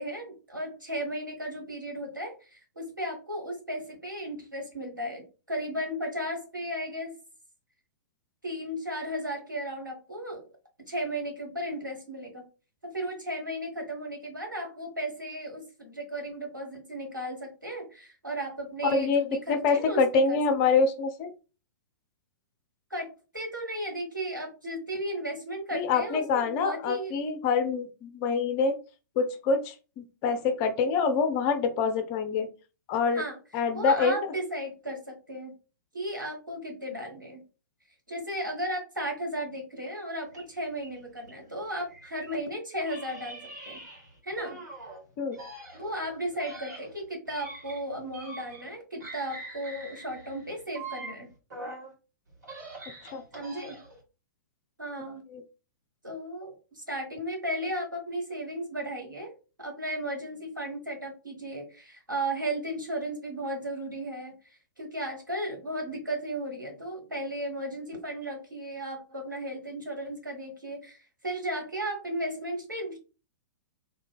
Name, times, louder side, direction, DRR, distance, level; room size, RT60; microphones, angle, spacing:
voice 1, 0.0-7.2 8.4-10.4 10.9-12.4 12.8-20.0 20.3-20.4 20.7-20.8 22.9-27.1 33.1-33.4 33.7-35.5 35.9-37.4 38.1-43.4 43.7-43.8 44.2-44.6 45.7-51.3 53.3-53.8 54.8-55.2 56.0-59.3 59.6-64.3 64.8-73.0, right 1 dB, 90° right, 0 dB, 1.4 m, -35 dB
voice 2, 19.5-21.3 25.7-28.8 29.2-32.5 32.9-33.2 33.5-34.2 45.2-45.4 53.1-53.2 55.3-55.4, left 5 dB, 30° left, 7 dB, 0.6 m, -26 dB
sound 1, 40.3-42.4 42.8-45.0 45.3-48.7 49.0-51.9 52.3-54.0, right 2 dB, 60° right, 1.9 m, -44 dB
2.9 x 2.7 x 3.5 m, 0.33 s
figure-of-eight pair, 110°, 10 cm